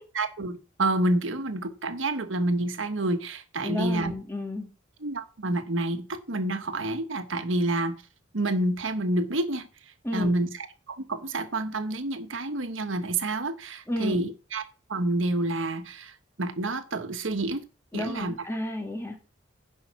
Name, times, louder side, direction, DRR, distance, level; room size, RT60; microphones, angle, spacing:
voice 1, 0.1-4.1 5.0-8.0 8.3-9.7 10.1-17.7 17.9-18.3, right 2 dB, 80° right, 1.3 m, -28 dB
voice 2, 3.6-4.7 10.0-10.3 13.9-14.2 17.9-19.2, left 1 dB, 15° left, 1.9 m, -31 dB
10.5 x 5.6 x 6.0 m
head